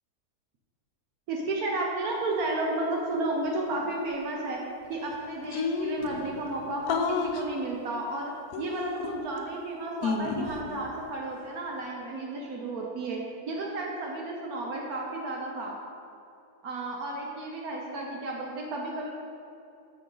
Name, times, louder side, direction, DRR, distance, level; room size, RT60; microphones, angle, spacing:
voice 1, 1.3-4.6 4.9-15.8 16.6-19.1, right 2 dB, 70° right, -1 dB, 1.3 m, -32 dB
sound 1, 2.3-2.6 3.6-4.2 5.2-5.3 5.6-7.2 7.7-8.2 8.9-9.4 10.2-12.1, right 1 dB, 40° right, 1.8 m, -51 dB
sound 2, 4.8-4.9 5.1-5.2 5.5-6.1 6.9-7.4 8.5-9.4 10.0-10.6, left 5 dB, 65° left, 1.1 m, -30 dB
13.0 x 5.1 x 3.8 m, 2.7 s
omnidirectional pair, 1.7 m